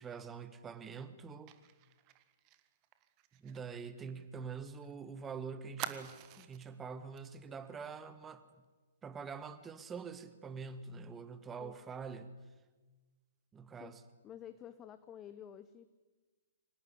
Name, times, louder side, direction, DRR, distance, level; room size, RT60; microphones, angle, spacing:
voice 1, 0.0-1.5 3.3-8.4 9.0-12.3 13.5-14.0, right 5 dB, 15° right, 12 dB, 1.4 m, -45 dB
Fire, 1.5-4.9 5.2-5.3 5.8-6.7 7.2-7.3 7.7-7.9, right 13 dB, 30° right, 1.6 m, -47 dB
voice 2, 14.2-15.9, left 10 dB, 20° left, 12 dB, 0.9 m, -50 dB
25.0 x 18.5 x 9.9 m, 1.3 s
figure-of-eight pair, 120°, 0 cm